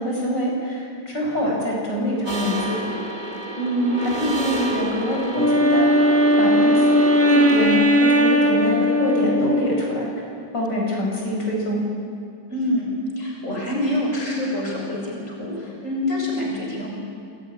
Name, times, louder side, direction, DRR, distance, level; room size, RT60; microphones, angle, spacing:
voice 1, 0.0-2.8 3.6-5.9 6.4-10.1 10.5-11.8, equal, 70° left, -2 dB, 6.7 m, -24 dB
sound 1, 2.3-7.7, right 2 dB, 25° right, 3.0 m, -30 dB
Wind instrument woodwind instrument, 5.3-10.1, equal, 10° left, 1.5 m, -18 dB
voice 2, 12.5-16.9, left 1 dB, 40° left, -1 dB, 6.7 m, -26 dB
28.0 x 21.5 x 9.8 m, 2.4 s
omnidirectional pair, 2.0 m